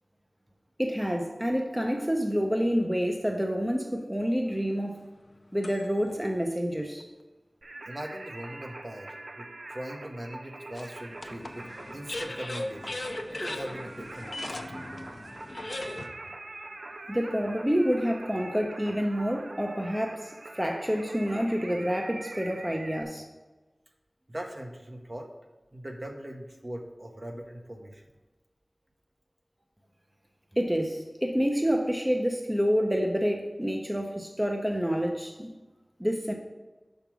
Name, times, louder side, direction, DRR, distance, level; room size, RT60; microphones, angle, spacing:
voice 1, 0.8-5.0 5.5-7.0 17.1-23.2 30.5-35.5 36.0-36.3, equal, 10° right, 2 dB, 0.7 m, -28 dB
sound 1, 4.5-6.2 6.8-6.9 10.7-16.1, left 1 dB, 60° left, 0.7 m, -38 dB
Singing, 7.6-23.0, right 2 dB, 75° right, 0.5 m, -44 dB
voice 2, 7.9-11.7 11.9-13.0 13.3-14.6 24.3-25.3 25.7-28.0, right 1 dB, 40° right, 2 dB, 1.0 m, -40 dB
5.8 x 5.3 x 6.1 m, 1.2 s
wide cardioid pair, 60°, 0 cm